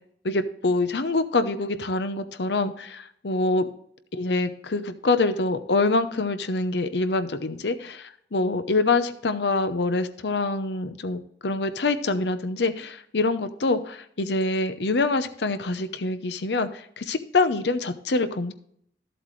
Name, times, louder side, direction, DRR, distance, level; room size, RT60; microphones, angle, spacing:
voice 1, 0.2-3.7 4.1-18.5, left 3 dB, 70° left, 10 dB, 0.8 m, -25 dB
13.5 x 7.9 x 3.2 m, 0.68 s
head